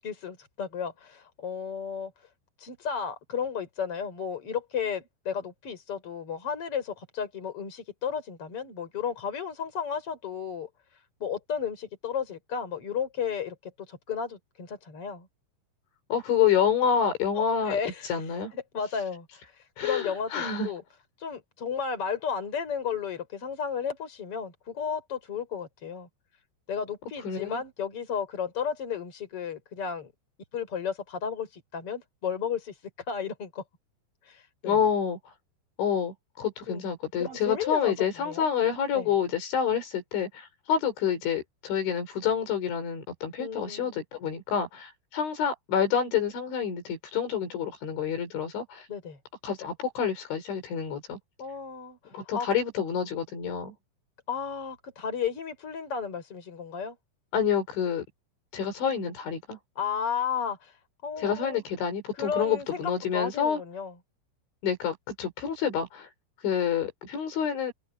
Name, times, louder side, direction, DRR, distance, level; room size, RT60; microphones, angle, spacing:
voice 1, 0.0-2.1 2.6-10.7 11.2-15.3 17.3-18.2 18.5-19.3 19.5-20.8 21.2-26.1 26.7-30.1 30.5-32.7 33.1-33.6 34.2-34.8 36.7-36.8 37.2-38.5 38.9-39.1 43.4-44.0 48.9-49.2 51.4-52.0 52.3-52.5 54.3-57.0 59.8-60.7 61.0-61.6 62.2-62.8 63.1-63.9, left 7 dB, 30° left, 6.1 m, -33 dB
voice 2, 16.1-17.8 18.0-18.5 19.8-20.7 27.2-27.6 34.7-35.2 35.8-48.9 49.4-51.2 52.1-53.7 57.3-58.0 58.5-59.6 61.2-63.6 64.6-66.1 66.4-67.7, left 8 dB, 75° left, 7.1 m, -28 dB
omnidirectional pair, 5.4 m